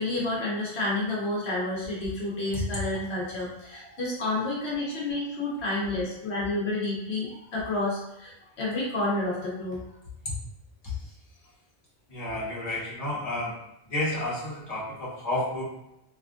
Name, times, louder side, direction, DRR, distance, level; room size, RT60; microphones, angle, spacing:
voice 1, 0.0-9.8, left 2 dB, 80° left, -4 dB, 1.1 m, -30 dB
voice 2, 10.8-11.1 12.1-13.6 13.8-15.6, left 1 dB, 35° left, -7 dB, 1.3 m, -31 dB
3.4 x 3.1 x 2.5 m, 0.84 s
omnidirectional pair, 1.1 m